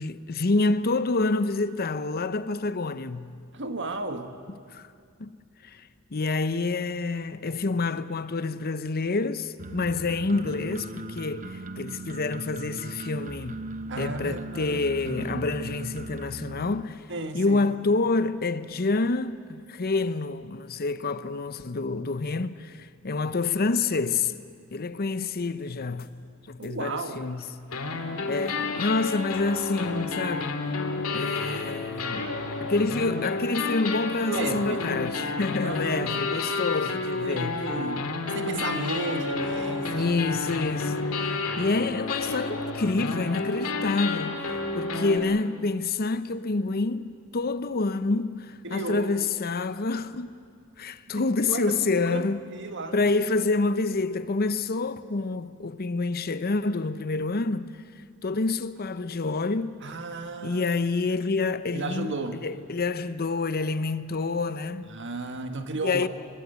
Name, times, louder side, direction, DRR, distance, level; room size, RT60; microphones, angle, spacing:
voice 1, 0.0-3.4 4.7-4.9 5.2-5.4 5.6-5.8 6.1-13.6 14.0-17.1 17.3-24.3 24.7-26.1 26.5-27.5 28.3-30.6 31.1-32.3 32.6-37.6 39.9-50.4 50.8-52.4 52.9-57.8 58.2-59.8 60.4-62.2 62.4-64.9 65.8-66.1, left 3 dB, 45° left, 0.7 m, -28 dB
voice 2, 3.5-4.3 13.9-15.5 17.1-17.6 26.6-27.2 34.3-34.8 35.6-36.2 37.2-40.2 41.4-41.8 47.9-48.0 48.6-49.1 51.1-53.0 59.8-60.7 61.7-62.4 64.9-66.1, right 2 dB, 60° right, 1.7 m, -34 dB
sound 1, 9.6-16.8, right 2 dB, 40° right, 0.8 m, -38 dB
sound 2, 26.0-26.1 26.6-26.7 27.7-45.2, left 3 dB, 80° left, 2.3 m, -30 dB
25.0 x 21.0 x 8.2 m
head